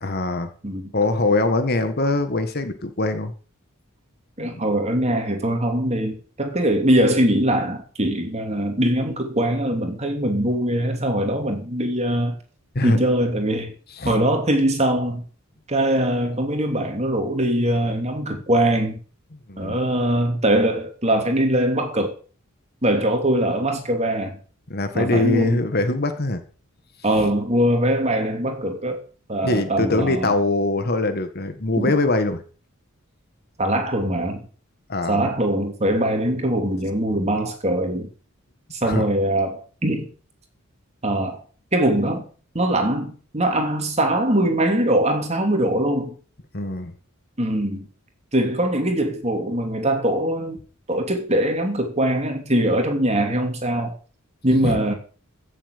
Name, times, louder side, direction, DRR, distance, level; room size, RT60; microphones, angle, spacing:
voice 1, 0.0-0.5 0.9-3.3 4.4-4.6 12.8-13.0 14.0-14.2 19.5-19.8 24.7-26.4 27.2-27.3 29.4-32.4 34.9-35.2 38.8-39.1 46.5-46.9 54.6-54.8, left 2 dB, 45° left, 1.6 m, -22 dB
voice 2, 4.4-12.4 12.8-13.7 14.0-15.2 15.7-19.0 19.6-22.1 22.8-24.4 24.9-25.6 27.0-29.0 29.3-30.3 31.8-31.9 33.6-34.4 35.1-38.1 38.7-40.1 41.0-41.4 41.7-42.3 42.5-46.1 47.4-47.9 48.3-50.6 50.9-53.9 54.4-54.9, right 1 dB, 30° right, 3.0 m, -22 dB
15.5 x 7.4 x 6.7 m
head